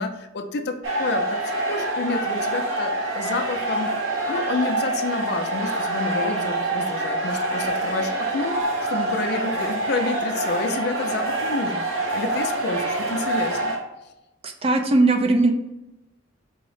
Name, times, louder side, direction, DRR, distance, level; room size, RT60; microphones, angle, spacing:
voice 1, 0.0-3.9 4.3-8.6 8.9-11.8 12.1-13.8, left 3 dB, 55° left, 7 dB, 0.4 m, -29 dB
sound 1, 0.8-13.8, right 2 dB, 80° right, 0.8 m, -26 dB
voice 2, 14.4-15.5, right 2 dB, 30° right, 4 dB, 0.4 m, -19 dB
4.9 x 2.0 x 4.7 m, 0.95 s
head